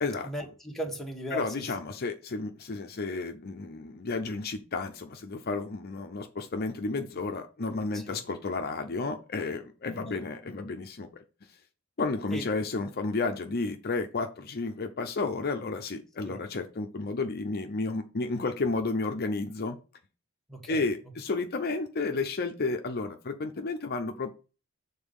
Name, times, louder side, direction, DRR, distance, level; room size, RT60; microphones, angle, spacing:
voice 1, 0.2-1.5 7.9-8.2 10.1-10.2 12.3-12.4 16.2-16.4 20.5-20.9, equal, ahead, 1.4 m, -37 dB
voice 2, 1.3-11.1 12.0-19.8 20.7-24.3, left 3 dB, 45° left, 0.6 m, -32 dB
7.0 x 3.9 x 5.4 m
head